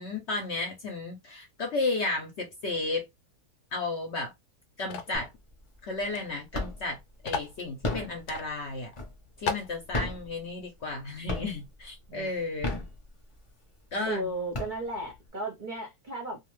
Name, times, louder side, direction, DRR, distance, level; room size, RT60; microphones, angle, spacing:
voice 1, 0.0-3.0 3.7-4.3 4.8-5.3 5.8-7.0 7.2-8.9 9.4-12.8 13.9-14.3, left 3 dB, 55° left, 0.8 m, -33 dB
sound 1, 4.9-5.2 6.1-6.2 6.5-6.6 7.3-7.6 8.3-8.5 8.9-9.0 9.5-9.7, left 5 dB, 80° left, 1.1 m, -33 dB
sound 2, 5.1-5.6 6.0-7.0 7.6-9.4 9.8-11.0 11.3-11.8 12.4-13.5 14.0-14.1 14.3-15.2, left 2 dB, 30° left, 0.6 m, -34 dB
voice 2, 12.1-12.9 14.1-16.4, right 1 dB, 40° right, 0.7 m, -35 dB
2.5 x 2.4 x 3.1 m
omnidirectional pair, 1.6 m